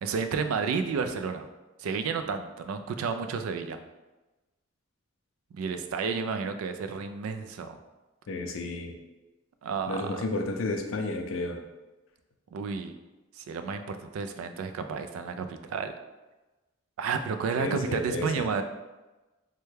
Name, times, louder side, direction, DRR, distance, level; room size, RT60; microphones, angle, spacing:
voice 1, 0.0-1.5 1.8-3.8 5.5-7.8 9.6-10.2 12.5-12.9 13.4-15.9 17.0-18.6, right 5 dB, 85° right, 9 dB, 0.3 m, -31 dB
voice 2, 8.3-8.9 9.9-11.6 17.6-18.5, left 2 dB, 70° left, 4 dB, 0.4 m, -32 dB
3.2 x 2.2 x 3.2 m, 1.1 s
head